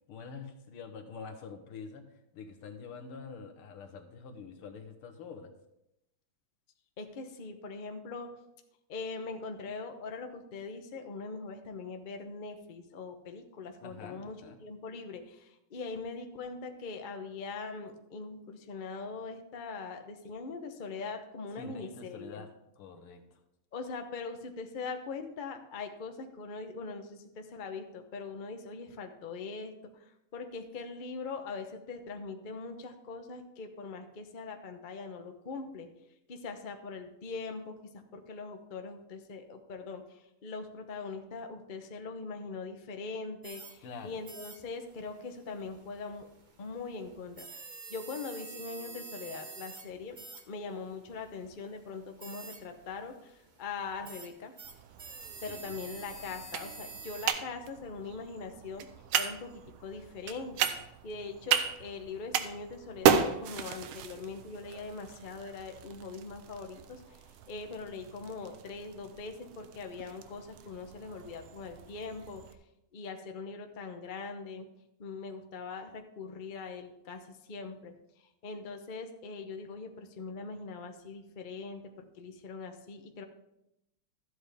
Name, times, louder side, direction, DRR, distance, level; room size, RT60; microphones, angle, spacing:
voice 1, 0.1-5.5 13.8-14.6 21.6-22.5 22.8-23.4 43.8-44.2 55.5-55.8, left 5 dB, 85° left, 5 dB, 2.0 m, -46 dB
voice 2, 7.0-8.3 8.9-22.4 23.7-35.9 36.3-46.3 46.6-50.2 50.4-54.5 55.4-58.8 59.2-72.4 72.9-74.7 75.0-83.2, left 4 dB, 65° left, 5 dB, 0.4 m, -42 dB
sound 1, 43.4-57.3, right 4 dB, 60° right, 0.4 m, -49 dB
sound 2, 54.6-72.5, right 8 dB, 80° right, 1.5 m, -35 dB
13.0 x 8.0 x 3.4 m, 0.84 s
omnidirectional pair, 2.3 m